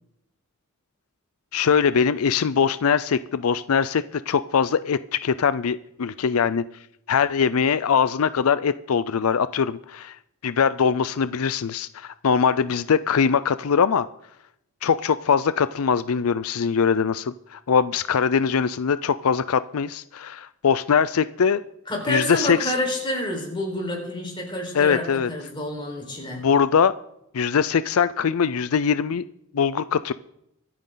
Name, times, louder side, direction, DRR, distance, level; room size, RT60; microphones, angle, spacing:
voice 1, 1.5-6.6 7.1-10.2 10.4-14.1 14.8-21.6 22.1-22.7 24.7-25.3 26.3-26.9 27.3-29.3 29.5-30.1, left 6 dB, 90° left, 15 dB, 0.5 m, -22 dB
voice 2, 21.9-26.4, left 1 dB, 25° left, 1 dB, 4.5 m, -28 dB
24.0 x 9.5 x 3.9 m, 0.77 s
head